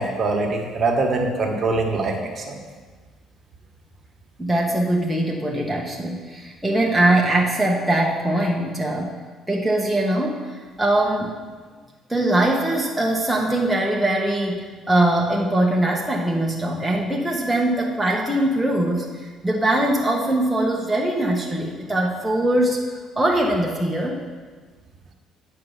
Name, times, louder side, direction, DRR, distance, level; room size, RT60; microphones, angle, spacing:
voice 1, 0.0-2.6, right 3 dB, 35° right, 1 dB, 1.4 m, -23 dB
voice 2, 4.4-9.1 9.5-10.5 10.8-11.4 12.1-14.6 14.9-22.8 23.2-24.2, right 1 dB, ahead, -3 dB, 1.0 m, -21 dB
9.3 x 4.7 x 7.1 m, 1.4 s
cardioid pair, 125°, 0 cm